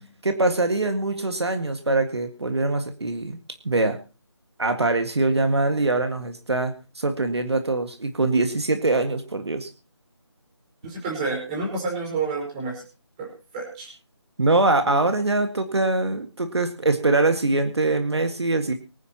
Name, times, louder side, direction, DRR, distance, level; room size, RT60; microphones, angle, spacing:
voice 1, 0.2-3.4 3.6-4.0 4.6-9.7 14.4-18.7, right 2 dB, 70° right, 7 dB, 1.9 m, -23 dB
voice 2, 10.8-12.8 13.2-13.9 14.8-15.0, right 4 dB, 15° right, -1 dB, 4.8 m, -30 dB
24.0 x 9.9 x 3.0 m, 0.33 s
figure-of-eight pair, 165°, 15 cm